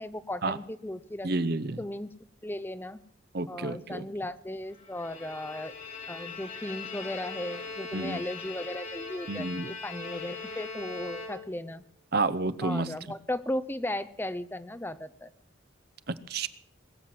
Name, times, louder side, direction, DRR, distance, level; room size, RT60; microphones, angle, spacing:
voice 1, 0.0-1.3 1.8-2.1 2.4-3.0 3.5-5.7 6.1-11.8 12.6-15.3, left 1 dB, 10° left, 12 dB, 0.6 m, -36 dB
voice 2, 1.2-1.8 3.3-4.0 7.9-8.2 9.3-9.7 12.1-12.9 16.1-16.5, right 3 dB, 55° right, 15 dB, 0.7 m, -30 dB
Bowed string instrument, 4.8-11.8, left 4 dB, 45° left, 7.1 m, -40 dB
21.0 x 7.7 x 7.6 m, 0.64 s
head